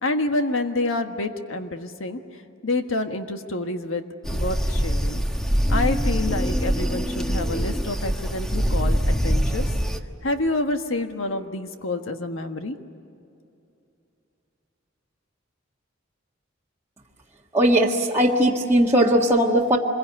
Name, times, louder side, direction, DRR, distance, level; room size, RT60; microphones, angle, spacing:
voice 1, 0.0-5.2 5.7-9.8 10.2-12.8, left 2 dB, 70° left, 6 dB, 1.6 m, -28 dB
sound 1, 4.2-10.0, equal, 5° left, 1.3 m, -23 dB
voice 2, 17.5-19.8, right 1 dB, 15° right, -5 dB, 1.6 m, -19 dB
26.5 x 22.5 x 9.9 m, 2.7 s
head